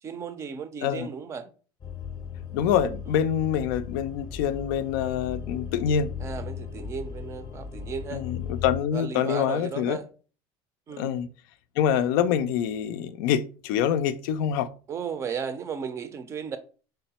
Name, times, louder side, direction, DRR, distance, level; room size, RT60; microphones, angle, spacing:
voice 1, 0.0-1.5 3.1-3.2 6.2-8.2 8.9-10.1 10.9-11.1 14.9-16.6, right 6 dB, 25° right, 0.4 m, -35 dB
sound 1, 1.8-8.8, left 7 dB, 30° left, 0.6 m, -37 dB
voice 2, 2.5-6.1 8.1-10.0 11.0-11.3 11.8-14.7, left 9 dB, 85° left, 0.4 m, -25 dB
3.7 x 2.1 x 4.1 m
cardioid pair, 150°, 11 cm